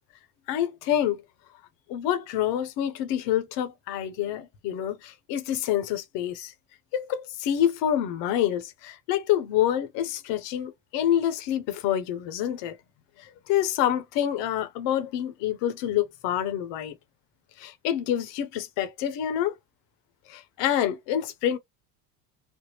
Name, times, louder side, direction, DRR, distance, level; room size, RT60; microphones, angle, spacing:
voice 1, 0.5-1.2 1.9-6.5 6.9-12.7 13.5-16.9 17.6-19.5 20.3-21.6, left 11 dB, 60° left, 0.8 m, -27 dB
3.5 x 2.0 x 3.0 m
hypercardioid pair, 70°, 49 cm